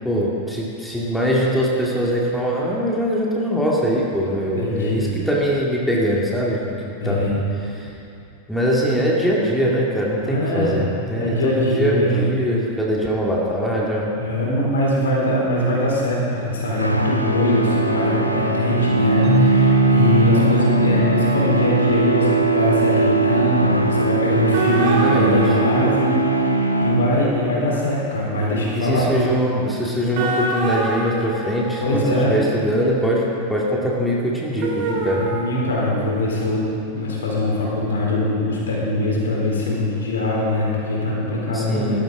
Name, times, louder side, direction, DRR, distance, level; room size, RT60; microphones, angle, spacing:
voice 1, 0.0-6.7 7.0-7.4 7.7-7.9 8.5-14.1 24.8-26.0 28.7-35.3 41.5-42.0, equal, ahead, -4 dB, 2.3 m, -22 dB
voice 2, 4.6-5.2 7.0-7.3 10.2-10.8 11.1-12.2 14.1-29.1 31.8-32.4 35.2-42.0, left 1 dB, 65° left, -4 dB, 4.0 m, -22 dB
sound 1, 16.7-27.5, right 3 dB, 90° left, 0.8 m, -20 dB
Keyboard (musical), 19.2-22.9, right 1 dB, 30° left, 3.5 m, -24 dB
sound 2, 24.5-26.5 30.1-32.3 34.6-36.1, right 2 dB, 45° right, 3.4 m, -27 dB
18.5 x 13.0 x 3.8 m, 2.6 s
figure-of-eight pair, 90°, 0 cm